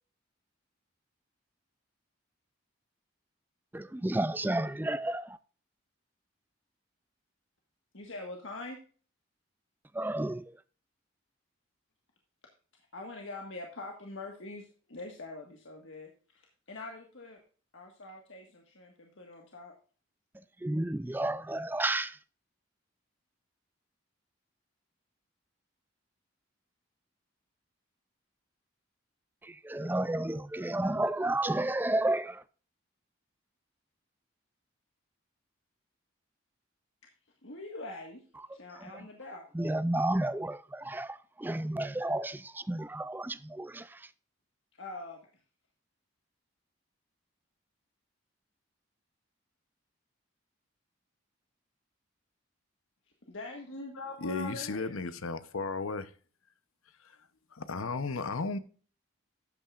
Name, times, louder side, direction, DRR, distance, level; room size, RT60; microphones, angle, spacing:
voice 1, 3.7-5.4 9.9-10.6 20.3-22.2 29.4-32.4 38.8-39.1 39.5-44.1, right 1 dB, 10° right, 0.3 m, -32 dB
voice 2, 7.9-8.8 12.9-17.4 17.7-19.7 37.4-38.2 38.5-39.5 44.7-45.2 53.2-55.0, left 2 dB, 70° left, 1.6 m, -44 dB
voice 3, 54.2-56.1 57.5-58.6, left 4 dB, 90° left, 0.8 m, -34 dB
13.0 x 8.7 x 2.5 m
head